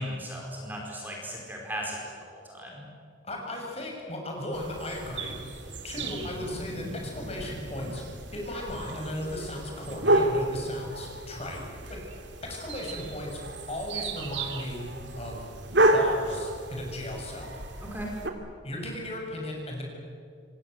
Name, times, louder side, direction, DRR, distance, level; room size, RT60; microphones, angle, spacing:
voice 1, 0.0-2.8 17.8-18.1, equal, 10° right, -2 dB, 5.0 m, -37 dB
voice 2, 3.2-5.4 5.8-8.0 8.3-11.6 11.9-12.0 12.4-13.4 13.7-14.9 15.2-15.5 15.9-17.6 18.6-19.8, left 1 dB, 30° left, 0 dB, 7.0 m, -36 dB
sound 1, 4.5-18.3, right 1 dB, 70° right, 2.9 m, -31 dB
27.5 x 24.0 x 8.1 m, 2.4 s
head